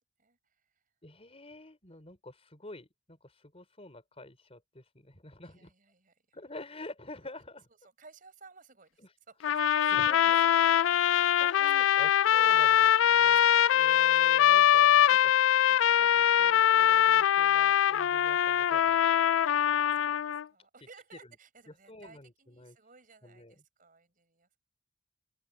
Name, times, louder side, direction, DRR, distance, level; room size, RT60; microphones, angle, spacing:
voice 1, 1.0-5.7 6.3-7.7 9.0-9.1 9.9-10.5 11.4-15.3 15.7-19.0 21.2-21.4 21.7-22.8 23.2-23.6, left 2 dB, 30° left, 5.2 m, -48 dB
voice 2, 5.4-6.4 8.0-10.3 10.6-15.5 19.7-24.6, right 4 dB, 45° right, 6.1 m, -58 dB
sound 1, 9.4-20.4, left 10 dB, 85° left, 0.4 m, -23 dB
open air
head